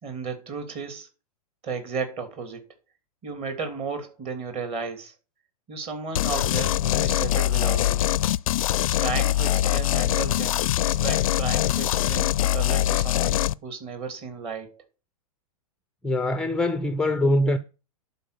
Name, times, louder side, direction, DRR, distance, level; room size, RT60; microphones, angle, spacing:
voice 1, 0.0-1.1 1.6-2.7 3.2-5.1 5.7-8.1 9.0-14.8, right 5 dB, 30° right, 2.9 m, -34 dB
sound 1, 6.2-13.5, left 13 dB, 60° left, 0.5 m, -23 dB
voice 2, 16.0-17.6, left 1 dB, 5° left, 0.6 m, -23 dB
11.5 x 4.5 x 6.8 m
hypercardioid pair, 110°, 20 cm